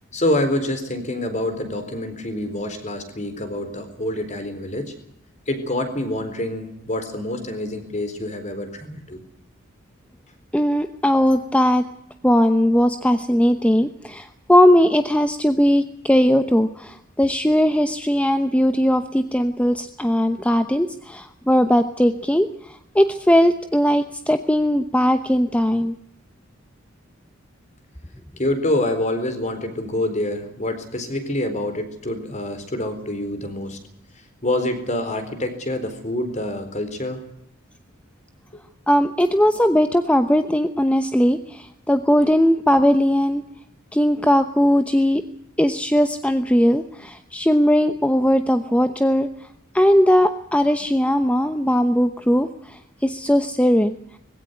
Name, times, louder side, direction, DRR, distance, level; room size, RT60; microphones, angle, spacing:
voice 1, 0.1-4.9 5.5-9.2 28.4-33.8 34.4-37.2 38.5-38.6, left 1 dB, 35° left, 8 dB, 4.1 m, -26 dB
voice 2, 10.5-11.8 12.2-22.5 22.9-25.9 38.9-43.4 43.9-45.2 45.6-49.3 49.7-52.5 53.0-53.9, equal, 5° left, 9 dB, 0.9 m, -18 dB
20.5 x 16.5 x 9.5 m, 0.73 s
head